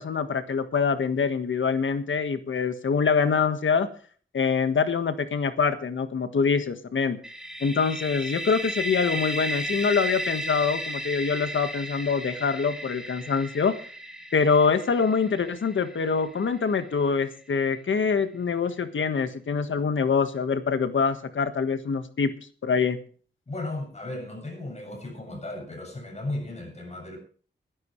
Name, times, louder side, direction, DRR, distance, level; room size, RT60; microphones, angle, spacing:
voice 1, 0.0-3.9 4.3-7.2 7.6-13.8 14.3-22.3 22.6-23.0, left 5 dB, 85° left, 1.6 m, -25 dB
sound 1, 7.2-16.9, equal, 5° right, 2.6 m, -34 dB
voice 2, 23.5-27.2, left 2 dB, 35° left, 7.3 m, -35 dB
22.5 x 11.0 x 3.2 m
wide cardioid pair, 135°, 19 cm